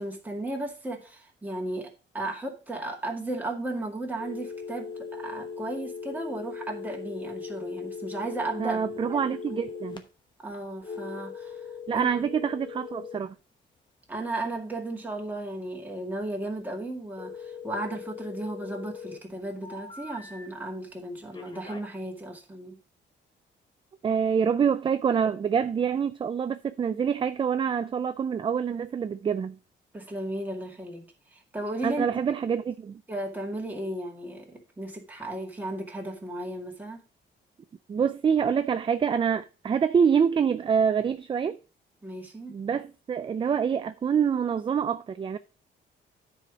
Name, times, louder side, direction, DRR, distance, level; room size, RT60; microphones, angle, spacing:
voice 1, 0.0-8.8 9.5-9.6 10.4-11.7 11.9-12.1 14.1-22.8 29.9-32.1 33.1-37.0 42.0-42.6, right 2 dB, 10° right, 2.1 m, -35 dB
sound 1, 4.2-10.0 10.8-13.2 17.2-19.2 19.6-20.5 21.3-21.8, left 5 dB, 25° left, 1.0 m, -39 dB
voice 2, 8.6-10.0 11.9-13.4 24.0-29.6 31.8-33.0 37.9-41.6 42.5-45.4, right 7 dB, 25° right, 0.4 m, -26 dB
9.7 x 4.9 x 5.0 m
cardioid pair, 130°, 20 cm